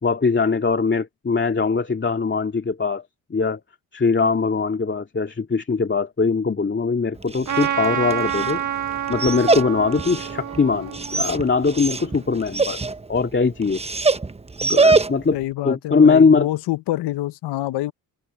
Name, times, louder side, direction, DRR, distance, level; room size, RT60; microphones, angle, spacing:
voice 1, 0.0-3.0 3.3-3.6 3.9-8.6 9.1-12.8 13.1-13.8 14.6-15.4 15.6-16.5, left 4 dB, 30° left, 2.1 m, -21 dB
Dog, 7.1-15.4, right 3 dB, 15° right, 1.0 m, -24 dB
Trumpet, 7.4-12.1, right 10 dB, 45° right, 2.1 m, -28 dB
voice 2, 15.3-17.9, left 15 dB, 80° left, 0.9 m, -26 dB
supercardioid pair, 65°, 40 cm